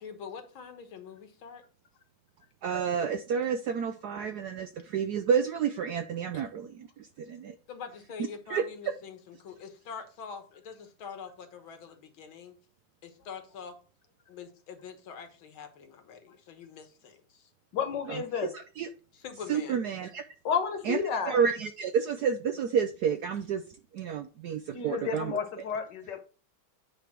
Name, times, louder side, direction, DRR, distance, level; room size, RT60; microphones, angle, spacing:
voice 1, 0.0-1.6 7.7-12.6 13.0-13.8 14.3-17.5 19.1-19.8, left 6 dB, 75° left, 7 dB, 2.0 m, -44 dB
voice 2, 2.6-7.5 8.5-8.6 18.1-18.9 19.5-20.2 20.8-21.0 21.2-23.6 23.9-25.4, right 7 dB, 75° right, 9 dB, 0.9 m, -30 dB
voice 3, 17.7-18.5 20.5-21.4 24.7-26.2, left 6 dB, 60° left, 7 dB, 1.7 m, -31 dB
9.1 x 3.3 x 5.9 m, 0.37 s
omnidirectional pair, 2.2 m